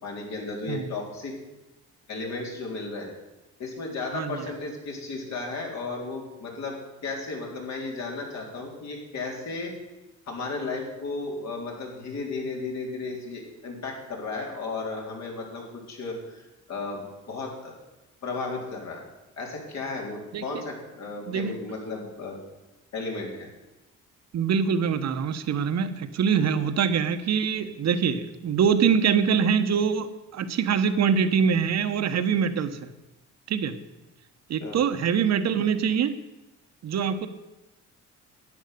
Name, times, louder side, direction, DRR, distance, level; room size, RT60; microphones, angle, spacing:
voice 1, 0.0-1.3 2.1-3.1 3.6-6.7 7.0-9.7 10.3-16.4 16.7-17.8 18.2-19.0 19.4-22.4 22.9-23.5 34.6-34.9, left 3 dB, 65° left, -1 dB, 3.9 m, -34 dB
voice 2, 4.1-4.4 20.3-20.4 21.3-21.5 24.3-30.1 30.3-32.9 33.5-33.8 34.5-36.1 36.8-37.3, right 7 dB, 60° right, 10 dB, 1.1 m, -24 dB
10.5 x 9.7 x 6.7 m, 1.1 s
cardioid pair, 90°, 30 cm